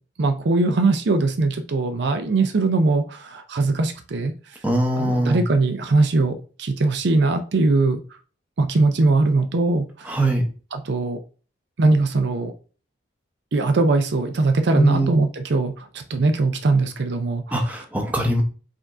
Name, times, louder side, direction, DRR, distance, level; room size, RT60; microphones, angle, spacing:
voice 1, 0.2-4.6 4.9-8.0 8.6-10.3 10.7-11.2 11.8-12.5 13.5-17.8, right 3 dB, 65° right, 8 dB, 0.5 m, -21 dB
voice 2, 4.6-5.4 10.1-10.4 14.7-15.1 17.5-18.4, right 1 dB, 10° right, 2 dB, 0.8 m, -21 dB
5.0 x 2.6 x 3.5 m, 0.37 s
head